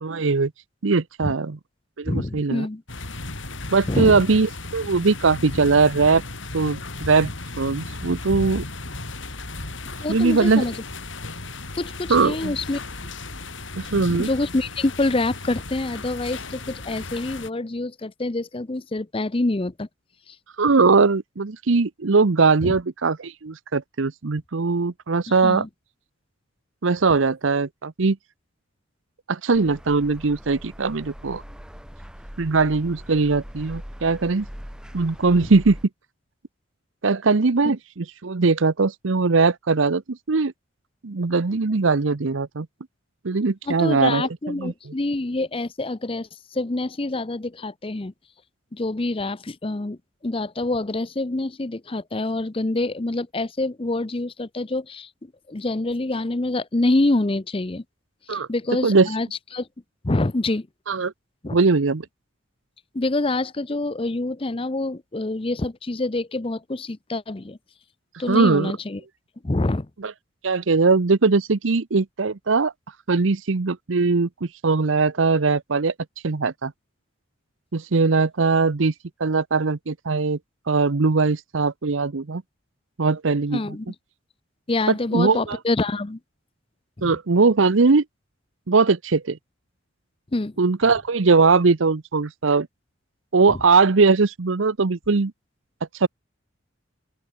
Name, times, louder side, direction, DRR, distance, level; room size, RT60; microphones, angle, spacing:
voice 1, 0.0-0.5 0.8-1.6 2.0-2.7 3.7-6.2 6.5-7.3 7.6-8.6 10.1-10.7 12.1-12.5 13.8-14.3 20.6-25.6 26.8-28.2 29.3-31.4 32.4-34.5 34.9-35.8 37.0-40.5 41.0-42.7 43.2-44.3 44.6-44.7 58.3-58.5 58.8-59.1 60.9-61.1 61.5-62.1 68.3-68.7 70.0-70.1 70.4-72.7 73.1-75.9 76.2-76.7 77.7-78.9 79.2-80.4 80.7-82.4 83.0-83.6 85.1-85.6 87.0-88.0 88.7-89.4 90.6-92.7 93.3-95.3 95.9-96.1, right 4 dB, 75° right, 0.8 m, -20 dB
voice 2, 2.1-2.8 3.9-4.2 10.0-10.8 11.8-12.8 13.9-19.9 20.3-20.4 22.6-22.7 25.3-25.7 37.6-37.7 43.7-48.1 48.7-57.8 58.3-59.3 59.5-59.7 60.0-60.7 61.4-61.6 62.9-67.6 68.2-69.0 69.4-69.9 83.5-83.9 84.7-86.2 87.0-87.2 90.3-90.6 93.5-93.6, left 2 dB, 25° left, 0.6 m, -26 dB
sound 1, 2.9-17.5, left 2 dB, 70° left, 5.0 m, -35 dB
sound 2, 29.5-35.9, equal, 5° right, 1.7 m, -41 dB
open air
head